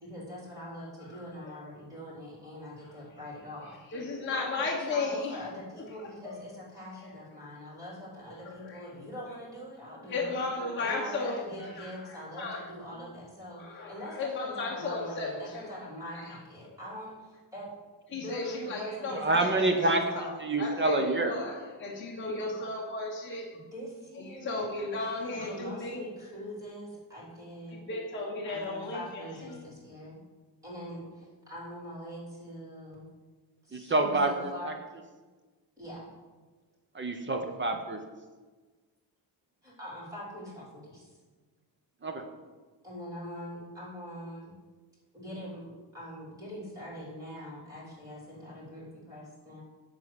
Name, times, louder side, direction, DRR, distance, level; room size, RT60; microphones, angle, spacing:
voice 1, 0.0-3.8 4.3-10.4 10.8-17.7 18.1-20.2 23.5-24.6 24.9-27.8 28.5-30.2 30.6-33.0 33.6-34.7 35.8-36.1 39.6-41.1 42.8-44.5 45.1-49.6, equal, 5° right, -6 dB, 3.5 m, -43 dB
voice 2, 1.0-1.6 2.8-5.4 5.8-6.4 6.9-7.2 8.3-8.9 9.2-9.4 9.9-12.7 13.6-16.4 16.7-16.8 18.1-23.5 24.1-26.0 27.7-29.6, left 3 dB, 25° left, -3 dB, 1.2 m, -36 dB
voice 3, 19.1-20.0 20.4-21.3 33.7-34.7 36.9-38.0 42.0-42.3, right 2 dB, 25° right, 5 dB, 0.7 m, -27 dB
11.0 x 3.9 x 7.7 m, 1.3 s
cardioid pair, 165°, 45 cm